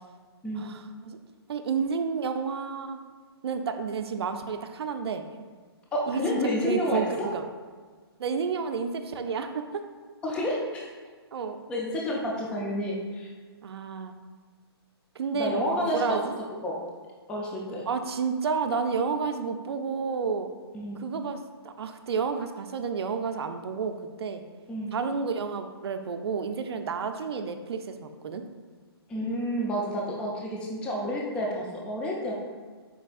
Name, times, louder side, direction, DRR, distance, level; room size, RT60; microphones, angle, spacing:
voice 1, 0.6-1.2 1.5-3.0 3.4-5.2 6.1-7.4 8.2-9.8 11.3-11.6 13.6-14.1 15.2-15.6 15.9-16.4 17.9-20.5 21.0-24.4 24.9-28.4, right 5 dB, 70° right, 8 dB, 0.4 m, -30 dB
voice 2, 5.9-7.3 10.2-10.9 11.7-13.3 15.3-16.2 16.6-16.8 17.3-17.9 20.7-21.0 24.7-24.9 29.1-32.3, equal, 5° left, -2 dB, 0.3 m, -30 dB
4.5 x 4.1 x 2.4 m, 1.5 s
hypercardioid pair, 150°, 14 cm